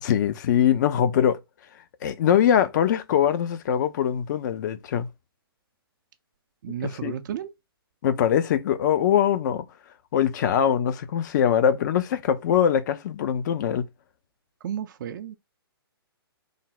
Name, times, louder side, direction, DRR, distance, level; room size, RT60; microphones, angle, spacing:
voice 1, 0.0-1.4 2.0-5.1 7.0-7.1 8.0-9.7 10.1-13.9, left 9 dB, 45° left, 0.5 m, -22 dB
voice 2, 6.6-7.5 14.6-15.3, right 10 dB, 50° right, 0.4 m, -33 dB
3.4 x 2.0 x 3.8 m
hypercardioid pair, 130°, 13 cm